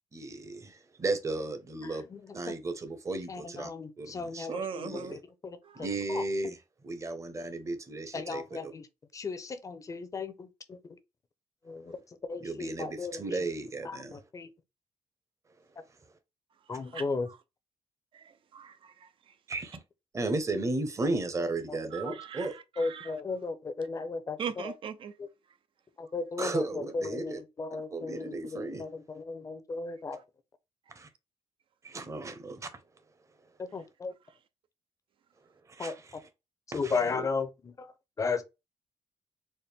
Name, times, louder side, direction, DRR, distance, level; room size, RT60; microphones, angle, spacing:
voice 1, 0.1-2.0 2.3-3.7 4.0-4.5 4.8-5.2 5.8-6.6 6.8-8.7 12.4-14.1 19.5-19.8 20.1-22.6 26.4-27.4 27.9-28.8 31.0-31.1 31.8-32.7 35.7-35.9 36.7-37.3, right 2 dB, 30° right, 0.9 m, -34 dB
voice 2, 1.8-2.5 3.3-6.2 8.1-8.9 9.1-11.0 11.7-12.0 12.3-13.2 13.8-14.5 15.8-15.9 16.7-17.3 21.4-22.1 22.8-24.7 25.2-25.3 26.0-30.2 33.6-34.1 35.8-36.2 36.7-38.4, left 4 dB, 30° left, 0.7 m, -36 dB
voice 3, 4.5-5.1 5.6-5.9 16.9-17.4 18.1-19.1 21.9-23.1 24.4-25.1, right 7 dB, 55° right, 0.6 m, -40 dB
4.2 x 2.1 x 3.5 m
cardioid pair, 105°, 11 cm